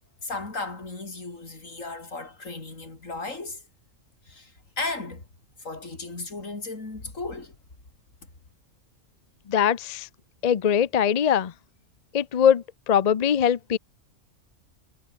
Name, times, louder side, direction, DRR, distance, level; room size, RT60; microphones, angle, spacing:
voice 1, 0.2-3.6 4.3-5.2 5.6-7.5, left 3 dB, 85° left, 4.3 m, -35 dB
voice 2, 9.5-10.1 10.4-11.5 12.1-13.8, left 8 dB, 40° left, 0.6 m, -22 dB
omnidirectional pair, 1.3 m